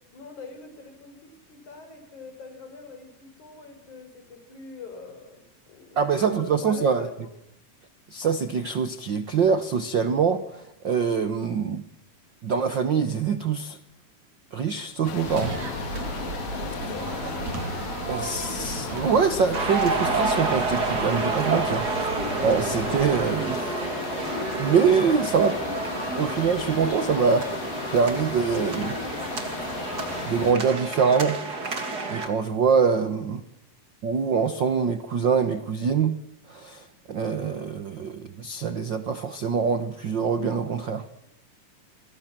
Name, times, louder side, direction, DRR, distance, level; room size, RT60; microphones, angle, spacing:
voice 1, 0.1-6.1 6.5-7.3 16.5-17.2, left 4 dB, 55° left, 6 dB, 6.6 m, -43 dB
voice 2, 6.0-7.1 8.1-11.8 12.4-13.8 14.5-15.5 18.1-22.1 22.4-23.7 24.6-25.6 26.2-29.0 30.2-31.4 31.7-31.8 32.1-33.4 34.0-36.2 36.5-41.0, right 6 dB, 75° right, 11 dB, 1.0 m, -24 dB
sound 1, 15.0-30.5, left 7 dB, 80° left, 4.1 m, -35 dB
sound 2, 15.2-23.4, right 3 dB, 55° right, 4.1 m, -34 dB
sound 3, 19.5-32.3, right 3 dB, 30° right, 3.1 m, -29 dB
29.5 x 23.5 x 7.6 m, 0.80 s
omnidirectional pair, 4.0 m